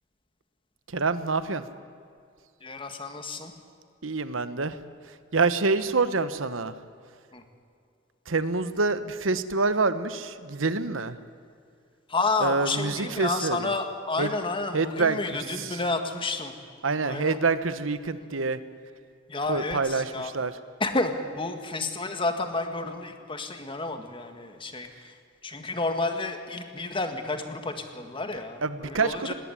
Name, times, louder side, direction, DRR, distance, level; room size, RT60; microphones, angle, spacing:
voice 1, 0.9-1.6 4.0-4.8 5.3-6.7 8.3-11.2 12.4-13.7 14.2-14.3 14.7-15.2 15.6-15.8 16.8-18.6 19.5-20.5 28.6-29.3, right 4 dB, 80° right, 12 dB, 1.1 m, -26 dB
voice 2, 2.6-3.5 7.3-7.4 12.1-16.6 17.0-17.4 19.3-20.3 20.8-29.3, left 3 dB, 25° left, 7 dB, 1.8 m, -30 dB
20.0 x 18.0 x 9.9 m, 2.3 s
head